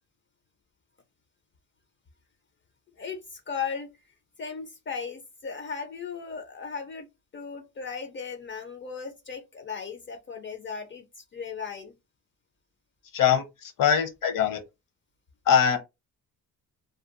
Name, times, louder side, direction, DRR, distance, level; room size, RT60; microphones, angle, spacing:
voice 1, 3.0-3.9 4.4-7.1 7.3-11.9, left 6 dB, 35° left, 0.4 m, -36 dB
voice 2, 13.1-14.6 15.5-15.8, left 8 dB, 65° left, 0.8 m, -22 dB
2.7 x 2.2 x 2.4 m
cardioid pair, 115°, 35 cm